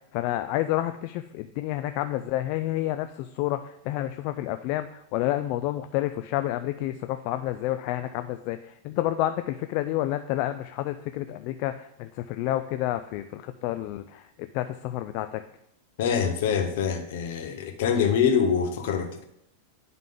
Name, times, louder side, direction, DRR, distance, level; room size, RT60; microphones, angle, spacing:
voice 1, 0.1-8.6 8.8-14.2 14.5-15.4, left 14 dB, 50° left, 9 dB, 0.3 m, -29 dB
voice 2, 16.0-19.2, left 7 dB, 65° left, 5 dB, 1.1 m, -25 dB
11.0 x 3.7 x 3.8 m, 0.77 s
supercardioid pair, 145°, 0 cm